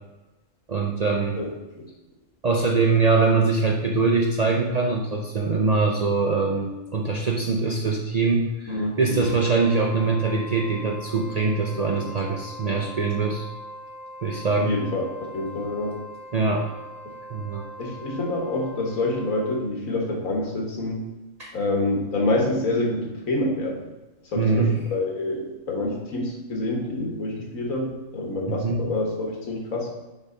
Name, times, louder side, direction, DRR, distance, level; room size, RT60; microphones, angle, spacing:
voice 1, 0.7-1.4 2.4-13.5 14.2-14.8 16.3-16.7 17.3-17.6 21.4-21.5 24.4-24.7 28.5-28.8, right 4 dB, 45° right, -1 dB, 0.5 m, -23 dB
voice 2, 8.7-9.3 14.6-16.0 17.8-21.0 21.5-23.8 24.2-29.9, left 2 dB, 85° left, -1 dB, 1.8 m, -27 dB
Wind instrument woodwind instrument, 9.1-19.7, equal, 80° right, 2.2 m, -41 dB
6.4 x 3.5 x 5.0 m, 1.1 s
omnidirectional pair, 1.4 m